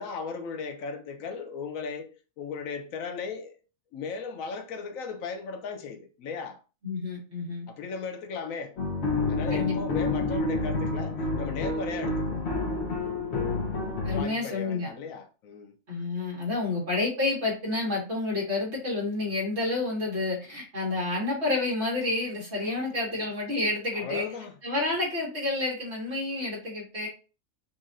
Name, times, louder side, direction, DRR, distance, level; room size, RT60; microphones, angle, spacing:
voice 1, 0.0-3.6 3.9-6.6 7.7-8.8 9.3-12.4 14.1-15.7 22.7-23.3 23.9-24.5, left 5 dB, 75° left, 1.0 m, -37 dB
voice 2, 6.8-7.7 9.5-9.8 14.0-14.9 15.9-24.2 24.6-27.1, left 2 dB, 50° right, 2.1 m, -29 dB
sound 1, 8.8-14.2, left 3 dB, 55° left, 1.2 m, -29 dB
5.4 x 2.5 x 2.5 m
omnidirectional pair, 1.4 m